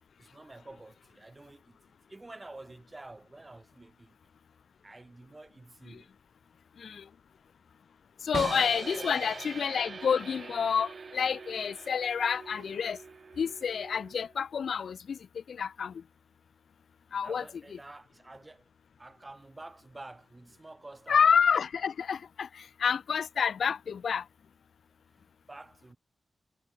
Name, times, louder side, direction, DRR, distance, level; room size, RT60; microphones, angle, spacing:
voice 1, 0.2-4.2 4.8-6.1 8.9-9.3 17.2-18.7 19.0-21.2 25.1-26.0, right 2 dB, 30° right, 6.3 m, -49 dB
voice 2, 8.2-13.0 13.4-15.2 15.5-15.9 17.1-17.4 21.1-24.2, left 7 dB, 80° left, 0.3 m, -28 dB
sound 1, 8.3-14.3, right 4 dB, 60° right, 0.7 m, -42 dB
cardioid pair, 50°, 0 cm